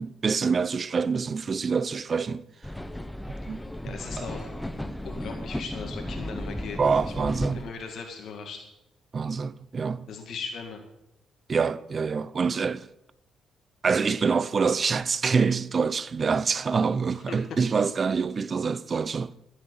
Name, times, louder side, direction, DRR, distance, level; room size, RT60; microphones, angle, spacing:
voice 1, 0.0-2.4 3.5-4.3 6.8-7.6 9.1-10.1 11.5-12.9 13.8-19.3, right 5 dB, 40° right, 0.6 m, -26 dB
sound 1, 2.6-7.7, left 1 dB, 5° left, 0.9 m, -35 dB
voice 2, 3.8-4.6 5.0-8.7 10.1-10.8 17.3-17.4, left 5 dB, 65° left, 2.1 m, -38 dB
16.0 x 7.4 x 7.0 m
cardioid pair, 90°, 0 cm